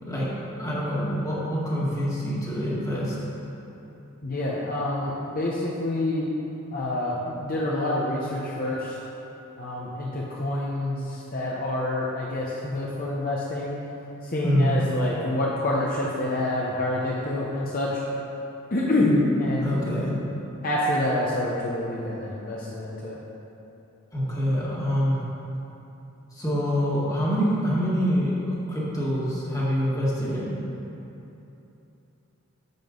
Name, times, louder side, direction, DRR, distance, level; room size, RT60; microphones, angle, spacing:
voice 1, 0.6-3.2 14.4-14.7 19.6-20.1 24.1-25.2 26.3-30.6, equal, 15° left, -7 dB, 1.7 m, -25 dB
voice 2, 4.2-6.3 6.7-9.0 9.6-13.8 14.2-18.0 18.7-20.0 20.6-23.2, left 1 dB, 40° left, -5 dB, 0.9 m, -27 dB
10.5 x 7.6 x 3.9 m, 3.0 s
head